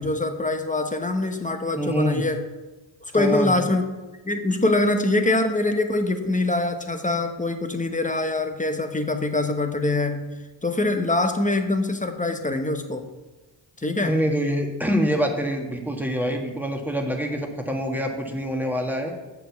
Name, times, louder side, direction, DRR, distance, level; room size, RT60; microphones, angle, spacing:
voice 1, 0.0-2.4 3.0-3.8 4.2-10.3 10.6-13.0 13.8-14.2, left 2 dB, 15° left, 6 dB, 0.9 m, -24 dB
voice 2, 1.8-2.3 3.1-3.6 13.9-19.2, equal, 5° right, 1 dB, 1.5 m, -25 dB
7.4 x 4.7 x 7.1 m, 1.2 s
cardioid pair, 55°, 50 cm